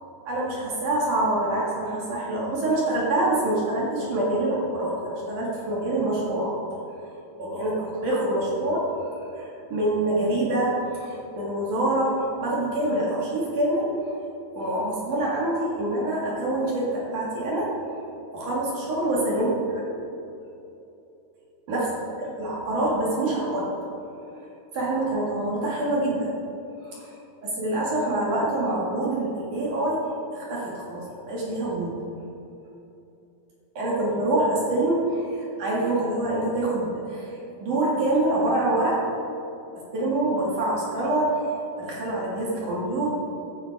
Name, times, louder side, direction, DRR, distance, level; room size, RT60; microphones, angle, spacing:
voice 1, 0.3-6.5 7.4-8.8 9.3-13.9 14.5-17.7 18.3-19.5 21.7-21.9 22.2-23.7 24.7-26.3 26.8-27.1 27.4-30.0 30.3-31.9 33.7-39.0 39.8-43.1, right 1 dB, 50° right, -5 dB, 2.6 m, -26 dB
14.5 x 10.5 x 3.5 m, 2.9 s
omnidirectional pair, 6.0 m